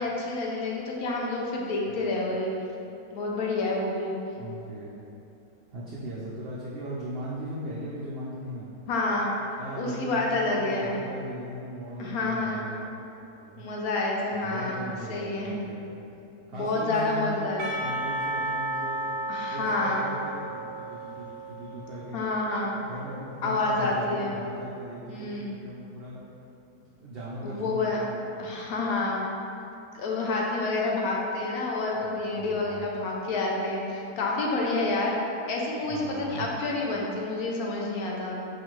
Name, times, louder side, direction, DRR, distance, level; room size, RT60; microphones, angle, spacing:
voice 1, 0.0-2.5 3.1-4.1 8.9-9.3 9.8-10.9 12.0-12.6 13.6-14.8 15.1-15.6 16.5-17.7 19.3-20.1 22.1-22.8 23.4-24.4 25.0-25.6 27.4-28.0 28.4-29.3 29.9-35.2 35.5-38.4, left 2 dB, 75° left, -2 dB, 1.1 m, -28 dB
voice 2, 4.3-5.0 5.7-8.7 9.6-12.9 13.4-13.7 14.4-16.0 16.5-19.1 19.5-22.2 22.7-26.2 27.0-28.9 32.3-32.8 35.9-36.5, right 1 dB, 85° right, -7 dB, 0.5 m, -39 dB
Percussion / Church bell, 17.6-22.6, right 1 dB, 30° right, 0.5 m, -33 dB
4.9 x 2.4 x 3.0 m, 2.8 s
omnidirectional pair, 1.6 m